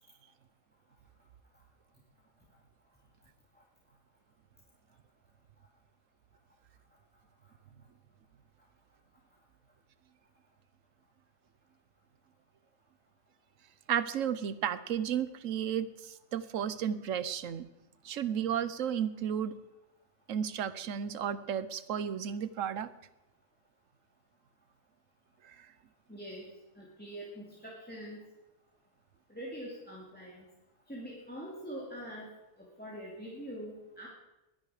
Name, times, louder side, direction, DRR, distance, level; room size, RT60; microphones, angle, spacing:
voice 1, 13.9-17.7 18.0-19.6 20.3-22.9 25.4-25.7, right 8 dB, 80° right, 14 dB, 1.2 m, -33 dB
voice 2, 26.1-26.5 26.8-28.3 29.3-30.5 30.9-32.3 32.6-34.1, equal, 5° left, -3 dB, 2.4 m, -44 dB
21.0 x 10.0 x 4.9 m, 0.98 s
omnidirectional pair, 1.3 m